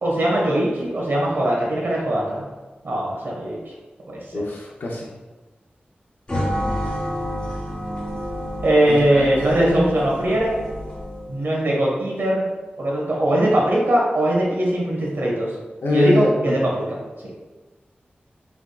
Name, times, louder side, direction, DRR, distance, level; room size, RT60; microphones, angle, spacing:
voice 1, 0.0-2.4 2.8-3.6 4.1-4.4 8.6-10.7 11.3-12.5 12.8-15.5 15.9-17.0, right 1 dB, 75° right, -3 dB, 1.3 m, -20 dB
voice 2, 4.3-5.1 8.9-9.3 9.6-9.8 15.8-16.6, left 2 dB, 80° left, -3 dB, 0.7 m, -24 dB
sound 1, 6.3-11.4, equal, 30° left, 0.9 m, -29 dB
5.9 x 3.5 x 2.4 m, 1.2 s
wide cardioid pair, 100°, 4 cm